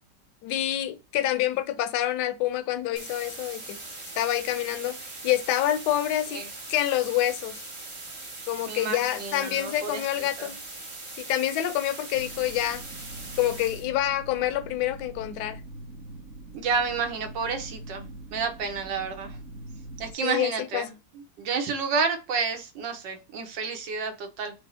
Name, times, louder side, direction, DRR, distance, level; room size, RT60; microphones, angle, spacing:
voice 1, 0.4-3.8 4.1-5.0 5.2-7.6 8.5-10.5 11.2-12.8 13.4-15.6 20.2-20.9, left 13 dB, 75° left, 1.1 m, -27 dB
sound 1, 3.0-13.9, right 2 dB, 35° right, 0.5 m, -41 dB
voice 2, 8.7-10.0 10.4-10.5 16.5-19.4 20.0-21.0 21.4-24.5, right 5 dB, 85° right, 1.5 m, -30 dB
sound 2, 12.1-20.1, right 2 dB, 55° right, 1.0 m, -43 dB
5.1 x 2.0 x 4.1 m
omnidirectional pair, 1.9 m